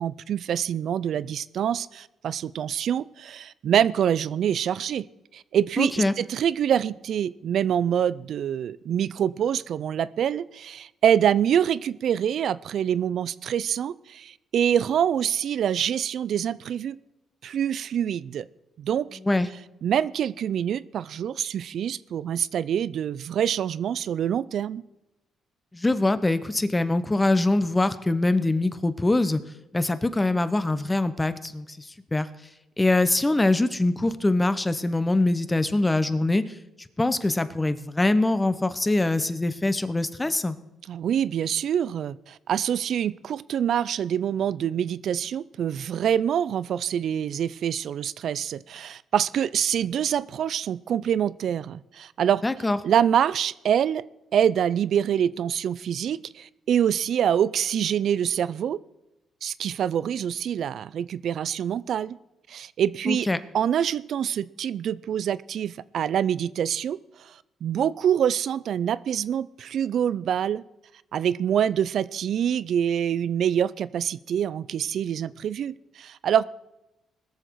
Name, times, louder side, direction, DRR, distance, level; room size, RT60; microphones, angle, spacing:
voice 1, 0.0-5.1 5.3-17.0 17.4-18.5 18.8-19.2 19.8-24.8 40.9-52.4 52.8-54.0 54.3-58.8 59.4-62.2 62.5-63.3 63.5-70.6 71.1-76.4, right 9 dB, 65° right, 19 dB, 0.4 m, -25 dB
voice 2, 5.8-6.1 19.3-19.5 25.7-29.4 29.7-32.3 32.8-36.5 37.0-40.6 52.4-52.8 63.1-63.4, left 2 dB, 15° left, 13 dB, 0.8 m, -23 dB
20.5 x 6.9 x 4.6 m, 0.94 s
cardioid pair, 90°, 0 cm